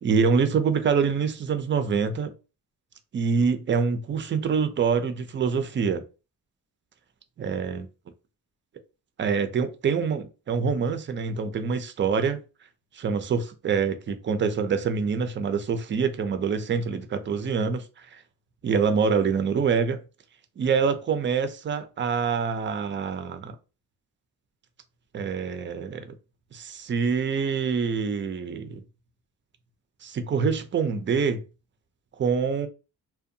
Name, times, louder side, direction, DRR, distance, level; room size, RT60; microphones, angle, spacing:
voice 1, 0.0-2.3 3.1-6.0 7.4-7.9 9.2-12.4 12.9-18.2 18.6-20.0 20.6-23.6 25.1-26.1 26.5-28.8 30.0-31.4 32.2-32.7, right 5 dB, 35° right, 0.4 m, -25 dB
2.6 x 2.2 x 2.6 m
cardioid pair, 105°, 37 cm